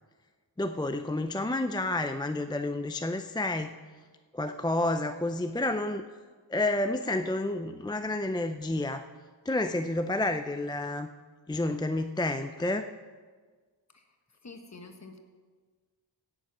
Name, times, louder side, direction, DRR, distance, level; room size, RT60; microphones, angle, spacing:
voice 1, 0.6-3.7 4.3-6.0 6.5-9.1 9.5-11.1 11.5-12.9, left 2 dB, 10° left, 8 dB, 0.4 m, -30 dB
voice 2, 14.4-15.2, left 3 dB, 35° left, 6 dB, 1.4 m, -47 dB
16.5 x 7.3 x 6.1 m, 1.5 s
wide cardioid pair, 100°, 46 cm